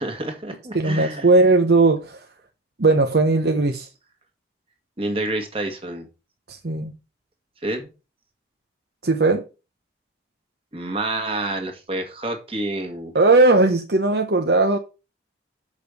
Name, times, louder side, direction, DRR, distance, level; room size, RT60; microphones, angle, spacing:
voice 1, 0.0-1.3 5.0-6.1 7.6-7.9 10.7-13.1, right 2 dB, 30° right, 1.8 m, -28 dB
voice 2, 0.7-2.2 2.8-3.9 6.5-6.9 9.0-9.4 13.1-14.8, right 3 dB, 60° right, 0.8 m, -18 dB
6.7 x 5.2 x 6.5 m
head